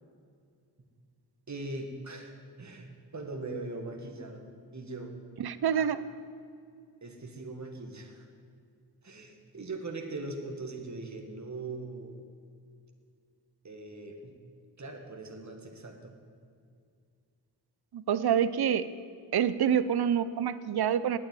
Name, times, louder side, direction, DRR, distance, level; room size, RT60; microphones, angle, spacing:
voice 1, 1.5-4.4 4.7-5.2 5.7-5.9 7.0-8.3 9.0-12.2 13.6-14.4 14.8-16.2, right 2 dB, 40° right, 3 dB, 1.8 m, -41 dB
voice 2, 5.4-6.0 17.9-18.9 19.3-21.2, right 8 dB, 60° right, 15 dB, 0.7 m, -27 dB
10.5 x 9.0 x 9.1 m, 2.3 s
cardioid pair, 40°, 43 cm